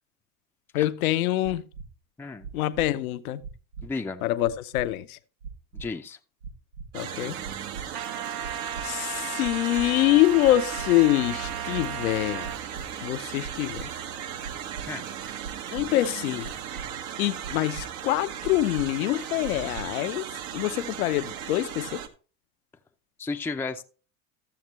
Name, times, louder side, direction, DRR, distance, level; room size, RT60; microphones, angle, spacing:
voice 1, 0.7-1.6 2.5-3.4 4.2-5.2 6.9-7.4 8.8-12.5 13.0-13.9 15.7-16.5 17.2-20.2 20.5-22.0, left 15 dB, 75° left, 0.7 m, -25 dB
sound 1, 1.4-1.9 2.4-2.9 3.4-3.9 4.4-4.9 5.4-5.9 6.4-6.9 7.4-7.9 8.4-8.9 9.4-9.9 10.4-10.9 11.4-11.9 12.4-12.9 13.4-13.9 14.4-14.9 15.4-15.9 16.4-16.9 17.4-17.9 18.4-18.9 19.4-19.9, right 5 dB, 85° right, 1.4 m, -39 dB
voice 2, 3.8-4.3 5.8-6.2 14.9-15.1 23.2-23.8, left 4 dB, 5° left, 0.5 m, -33 dB
sound 2, 6.9-22.1, right 9 dB, 65° right, 1.2 m, -37 dB
Trumpet, 7.9-12.6, right 8 dB, 40° right, 0.8 m, -36 dB
13.5 x 7.1 x 3.1 m
hypercardioid pair, 85°, 44 cm